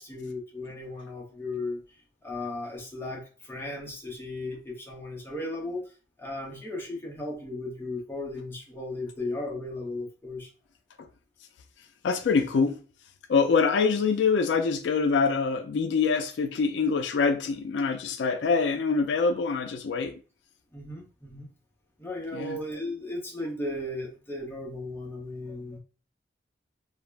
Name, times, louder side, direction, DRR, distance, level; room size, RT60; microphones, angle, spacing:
voice 1, 0.0-1.8 2.2-5.9 6.2-10.5 20.7-21.5 22.0-25.8, left 2 dB, 15° left, 0.6 m, -36 dB
voice 2, 12.0-12.8 13.3-20.2 22.3-22.6, left 5 dB, 70° left, 0.3 m, -25 dB
2.3 x 2.0 x 3.2 m
head